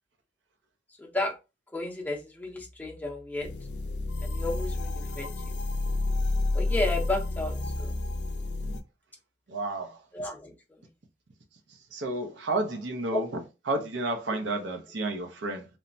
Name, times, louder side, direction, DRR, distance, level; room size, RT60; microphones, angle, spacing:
voice 1, 1.0-1.3 1.7-3.5 4.2-5.3 6.5-7.9 10.1-10.5 13.1-13.2, left 2 dB, 10° left, 0.6 m, -32 dB
sound 1, 3.4-8.8, left 2 dB, 70° left, 0.4 m, -30 dB
voice 2, 9.5-10.0 11.9-13.3 13.7-15.7, right 2 dB, 75° right, 0.5 m, -31 dB
3.1 x 2.0 x 2.5 m
head